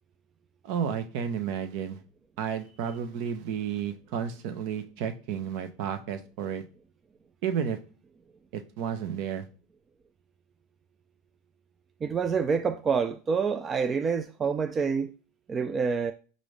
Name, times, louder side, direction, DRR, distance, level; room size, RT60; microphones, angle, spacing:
voice 1, 0.6-2.0 2.4-6.6 7.4-7.8 8.5-9.4, right 8 dB, 60° right, 0.7 m, -32 dB
voice 2, 12.0-15.1 15.5-16.1, right 5 dB, 25° right, 0.3 m, -27 dB
5.0 x 2.6 x 3.2 m
hypercardioid pair, 100°, 0 cm